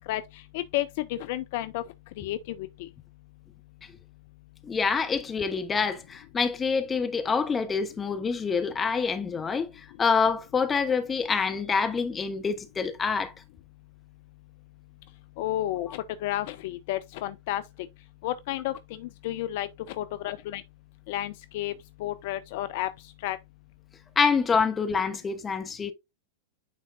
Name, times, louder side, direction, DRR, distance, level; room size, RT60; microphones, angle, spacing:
voice 1, 0.1-1.8 2.2-2.9 15.4-17.6 18.2-20.6 21.1-21.7 22.0-22.9 23.2-23.4, left 14 dB, 50° left, 0.4 m, -32 dB
voice 2, 4.6-9.7 10.0-13.3 24.2-25.9, left 5 dB, 20° left, 1.0 m, -26 dB
9.4 x 3.9 x 2.5 m
figure-of-eight pair, 90°, 0 cm